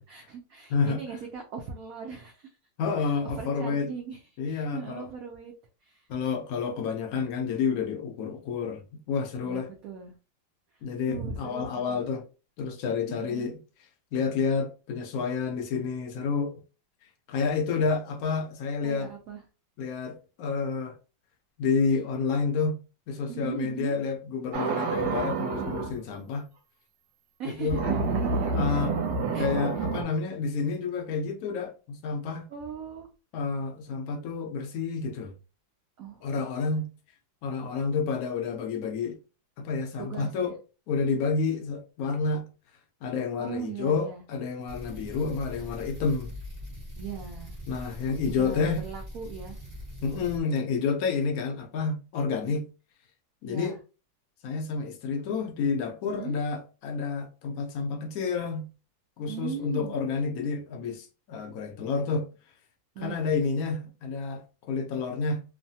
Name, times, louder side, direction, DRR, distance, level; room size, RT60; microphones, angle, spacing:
voice 1, 0.1-2.6 3.0-5.5 5.8-6.1 9.4-10.1 10.7-10.8 11.1-12.0 13.1-13.5 18.8-19.4 23.3-24.0 27.4-27.8 29.3-29.5 29.8-29.9 32.5-33.1 36.0-36.4 40.0-40.5 43.4-44.2 47.0-47.6 48.3-49.6 52.4-52.6 53.4-53.8 56.1-56.4 59.3-59.9 62.9-63.3, right 6 dB, 85° right, 0.7 m, -39 dB
voice 2, 0.7-1.0 2.8-3.9 4.4-5.0 6.1-9.7 10.8-12.2 12.6-13.6 14.1-16.6 17.3-19.1 19.8-20.9 21.6-22.8 23.1-26.5 27.6-27.8 28.5-29.0 29.4-32.5 33.3-35.3 36.2-36.9 37.4-39.2 39.6-40.6 40.9-42.5 43.0-46.3 47.7-48.8 50.0-52.7 53.4-53.7 54.4-58.7 59.2-62.3 63.0-64.4 64.7-65.4, left 5 dB, 70° left, 0.9 m, -29 dB
sound 1, 24.5-25.9 27.7-30.0, right 4 dB, 65° right, 1.2 m, -28 dB
sound 2, 44.7-50.4, equal, 30° right, 0.5 m, -41 dB
3.1 x 2.1 x 2.7 m
omnidirectional pair, 2.1 m